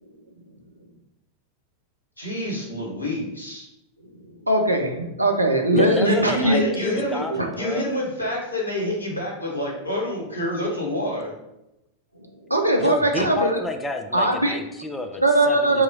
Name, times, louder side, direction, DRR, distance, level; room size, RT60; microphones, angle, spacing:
voice 1, 2.2-3.7 6.0-7.2 7.6-11.3, left 1 dB, 85° left, -4 dB, 1.0 m, -28 dB
voice 2, 4.5-6.8 7.3-7.5 12.5-13.6 14.1-14.6 15.2-15.8, right 1 dB, 85° right, 2 dB, 0.4 m, -20 dB
voice 3, 5.8-7.9 12.8-15.8, left 2 dB, 10° left, 5 dB, 0.4 m, -31 dB
2.9 x 2.3 x 3.9 m, 0.89 s
figure-of-eight pair, 90°, 0 cm